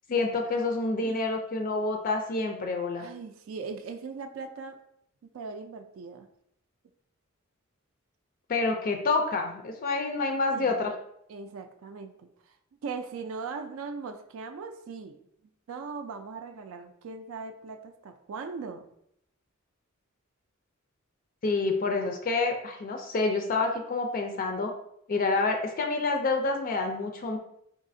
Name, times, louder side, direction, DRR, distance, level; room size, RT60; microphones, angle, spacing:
voice 1, 0.1-3.1 8.5-10.9 21.4-24.7 25.1-27.4, left 3 dB, 40° left, 3 dB, 0.4 m, -28 dB
voice 2, 3.0-4.8 5.2-6.3 10.5-10.8 11.3-12.6 12.8-15.2 15.7-18.9, right 4 dB, 70° right, 7 dB, 0.3 m, -39 dB
4.0 x 2.7 x 2.6 m, 0.74 s
head